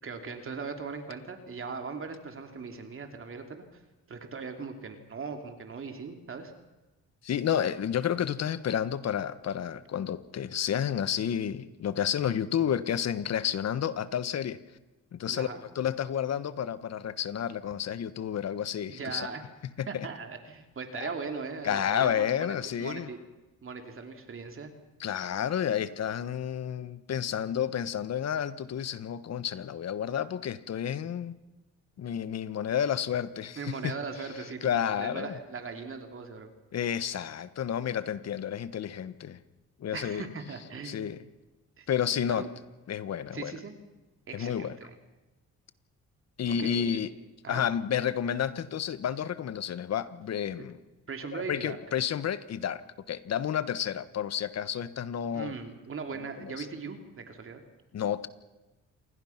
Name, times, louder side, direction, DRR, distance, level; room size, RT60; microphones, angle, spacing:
voice 1, 0.0-3.8 4.1-6.5 15.3-15.6 18.9-19.4 19.9-23.2 23.6-24.7 33.6-36.5 39.9-41.0 41.8-41.9 42.3-42.5 43.3-43.7 44.3-45.0 46.5-47.0 47.4-47.7 50.6-50.7 51.1-51.8 55.3-57.6, right 5 dB, 45° right, 5 dB, 3.1 m, -39 dB
voice 2, 7.2-14.6 15.1-15.5 15.7-19.3 19.8-20.1 21.0-21.1 21.6-23.1 25.0-31.4 32.0-33.9 34.6-35.4 36.7-39.4 39.8-40.3 40.8-41.2 41.9-42.5 42.9-43.5 44.3-44.8 46.4-47.1 47.5-50.8 51.3-52.8 53.1-55.5 56.4-56.7 57.9-58.3, left 9 dB, 60° left, 14 dB, 1.4 m, -30 dB
28.0 x 22.5 x 5.9 m, 1.1 s
cardioid pair, 90°, 30 cm